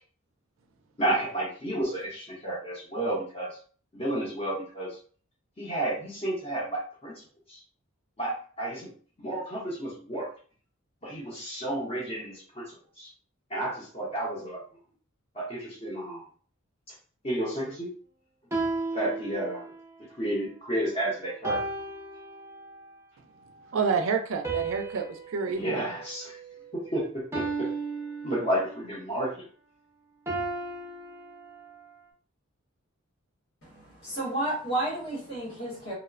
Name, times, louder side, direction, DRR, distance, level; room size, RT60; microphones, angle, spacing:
voice 1, 1.0-3.6 3.9-5.0 5.6-7.2 7.5-7.6 8.2-8.9 9.2-10.3 11.0-13.1 13.5-14.6 15.3-16.2 17.2-17.9 18.9-19.6 20.2-21.6 25.6-26.4 26.7-27.7 28.2-29.4, right 1 dB, 30° left, -7 dB, 0.7 m, -31 dB
sound 1, 18.5-19.9 21.4-22.9 24.4-26.8 27.3-28.9 30.3-31.8, right 3 dB, 10° right, 0.5 m, -35 dB
voice 2, 23.7-25.8, right 5 dB, 70° right, 5 dB, 0.4 m, -28 dB
voice 3, 33.6-35.9, right 1 dB, 70° left, -5 dB, 1.2 m, -32 dB
3.0 x 2.0 x 2.4 m, 0.43 s
head